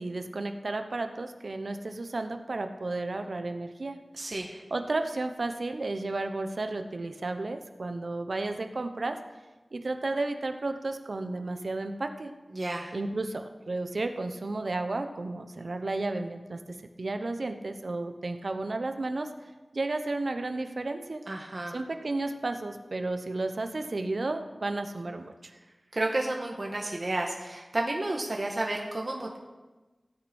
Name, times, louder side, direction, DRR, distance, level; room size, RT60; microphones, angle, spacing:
voice 1, 0.0-4.0 4.7-9.2 9.7-12.3 12.9-19.3 19.7-21.2 21.7-25.5, right 2 dB, 70° right, 7 dB, 1.0 m, -33 dB
voice 2, 4.1-4.6 12.5-12.9 21.3-21.7 25.9-29.4, right 2 dB, 55° right, 0 dB, 1.5 m, -31 dB
16.5 x 9.4 x 4.4 m, 1.2 s
wide cardioid pair, 45°, 0 cm